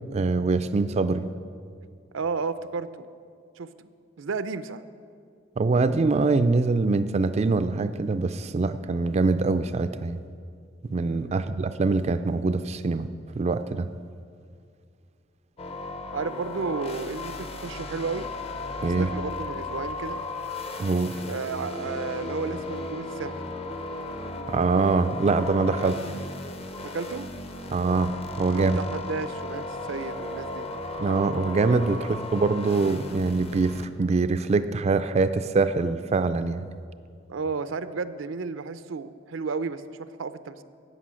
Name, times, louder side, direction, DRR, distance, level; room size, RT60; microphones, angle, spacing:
voice 1, 0.1-1.3 5.6-10.2 10.9-13.1 13.4-13.9 18.8-19.1 20.8-21.2 24.5-25.9 27.7-28.8 31.0-36.7, right 3 dB, 35° right, 10 dB, 0.4 m, -24 dB
voice 2, 2.1-3.1 3.6-3.9 4.2-4.8 11.2-11.4 16.1-18.3 19.0-20.2 21.3-23.5 25.7-26.1 26.8-27.2 28.5-30.7 37.3-40.6, right 4 dB, 90° right, 12 dB, 0.5 m, -33 dB
sound 1, 15.6-33.9, left 2 dB, 30° left, 0.8 m, -35 dB
13.5 x 8.8 x 6.2 m, 2.3 s
head